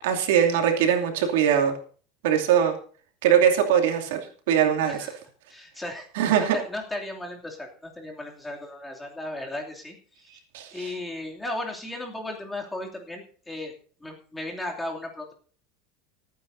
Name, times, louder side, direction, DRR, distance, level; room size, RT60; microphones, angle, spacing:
voice 1, 0.0-1.7 2.2-2.7 3.2-5.0 6.2-6.6 10.5-10.9, right 9 dB, 80° right, 4 dB, 2.6 m, -21 dB
voice 2, 4.8-5.2 5.5-6.1 6.4-10.4 10.7-13.7 14.0-15.3, left 1 dB, 10° left, 0 dB, 2.8 m, -35 dB
27.5 x 9.3 x 2.7 m, 0.43 s
supercardioid pair, 145°, 0 cm